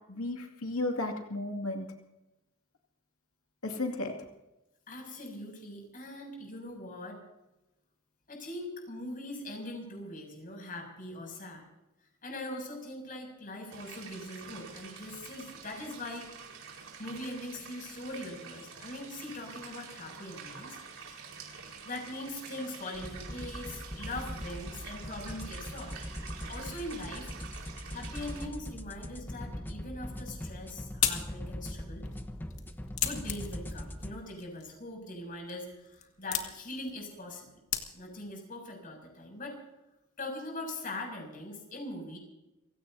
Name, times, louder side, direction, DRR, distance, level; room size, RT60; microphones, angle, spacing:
voice 1, 0.1-1.9 3.6-4.3, left 2 dB, 90° left, 3 dB, 2.4 m, -34 dB
voice 2, 4.9-7.2 8.3-11.7 12.2-16.3 17.0-20.8 21.0-21.3 21.8-26.0 26.5-27.3 27.9-32.1 33.0-37.5 37.9-39.6 40.2-42.2, left 1 dB, 40° left, 2 dB, 7.1 m, -41 dB
sound 1, 13.7-28.5, right 5 dB, 75° right, 4.7 m, -47 dB
sound 2, 22.9-34.1, equal, 10° left, 1.0 m, -41 dB
sound 3, 30.3-38.3, left 10 dB, 75° left, 2.1 m, -38 dB
30.0 x 17.0 x 2.8 m, 0.96 s
head